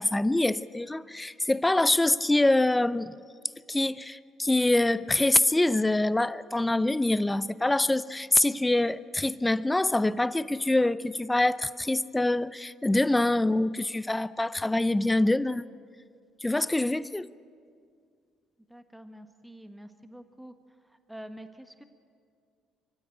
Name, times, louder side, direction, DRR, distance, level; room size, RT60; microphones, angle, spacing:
voice 1, 0.0-3.1 3.7-15.6 16.4-17.3, left 2 dB, 15° left, 18 dB, 0.6 m, -25 dB
voice 2, 18.7-20.5 20.8-21.8, right 1 dB, 5° right, 9 dB, 1.4 m, -46 dB
24.0 x 15.5 x 9.0 m, 2.2 s
hypercardioid pair, 55°, 0 cm